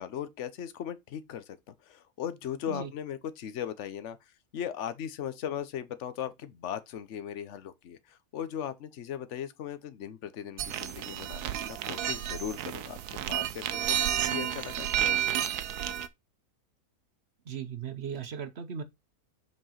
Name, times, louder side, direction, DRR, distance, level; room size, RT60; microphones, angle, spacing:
voice 1, 0.0-4.2 4.5-14.0 14.3-15.6, left 9 dB, 55° left, 1.1 m, -38 dB
sound 1, 10.6-16.1, right 11 dB, 85° right, 1.2 m, -31 dB
voice 2, 17.5-18.8, right 7 dB, 50° right, 1.1 m, -37 dB
5.4 x 4.7 x 5.7 m
omnidirectional pair, 1.6 m